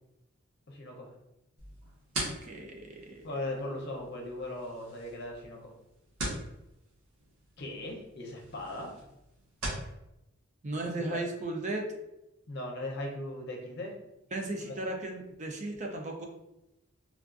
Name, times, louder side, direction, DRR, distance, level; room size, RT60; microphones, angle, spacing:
voice 1, 0.7-1.1 3.2-5.7 7.6-9.1 10.7-11.2 12.5-13.9 14.7-14.8, left 1 dB, 55° left, 0 dB, 0.7 m, -39 dB
sound 1, 1.6-9.9, right 1 dB, 90° right, 1.1 m, -42 dB
voice 2, 2.4-3.3 10.6-11.9 14.3-16.3, right 2 dB, 35° right, 2 dB, 0.4 m, -36 dB
3.4 x 2.4 x 2.4 m, 0.90 s
head